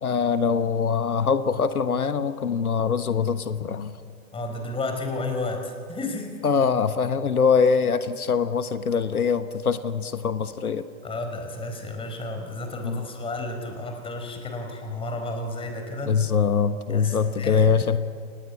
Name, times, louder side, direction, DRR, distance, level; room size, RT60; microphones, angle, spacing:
voice 1, 0.0-3.9 6.4-10.8 12.8-13.1 16.0-18.0, left 6 dB, 85° left, 11 dB, 1.3 m, -23 dB
voice 2, 4.3-6.3 11.0-16.1 16.9-17.7, left 2 dB, 10° left, 4 dB, 4.4 m, -32 dB
29.0 x 18.5 x 8.4 m, 2.3 s
hypercardioid pair, 120°, 43 cm